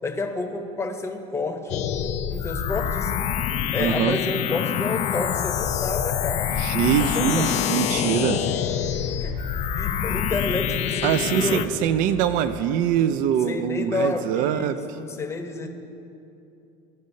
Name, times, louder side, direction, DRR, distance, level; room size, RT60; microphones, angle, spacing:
voice 1, 0.0-3.1 3.7-7.5 7.9-8.6 9.1-11.8 13.5-15.7, left 3 dB, 15° left, 4 dB, 0.8 m, -30 dB
sound 1, 1.7-11.7, left 9 dB, 50° left, 0.4 m, -26 dB
voice 2, 3.8-4.2 6.5-8.4 11.0-14.8, right 9 dB, 60° right, 12 dB, 0.4 m, -23 dB
sound 2, 6.5-12.7, right 3 dB, 40° right, 1.0 m, -44 dB
14.5 x 5.2 x 2.7 m, 2.7 s
supercardioid pair, 105°, 15 cm